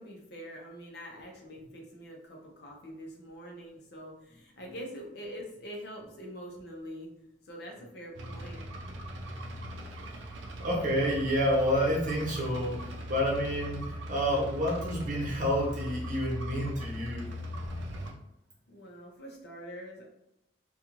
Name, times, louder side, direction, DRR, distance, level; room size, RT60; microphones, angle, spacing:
voice 1, 0.0-7.1 7.4-8.7 18.7-20.0, equal, 60° left, 0 dB, 0.6 m, -44 dB
sound 1, 8.1-18.1, equal, 90° right, 0.5 m, -40 dB
voice 2, 10.6-17.2, equal, 45° right, -3 dB, 0.8 m, -29 dB
2.4 x 2.3 x 2.9 m, 0.84 s
head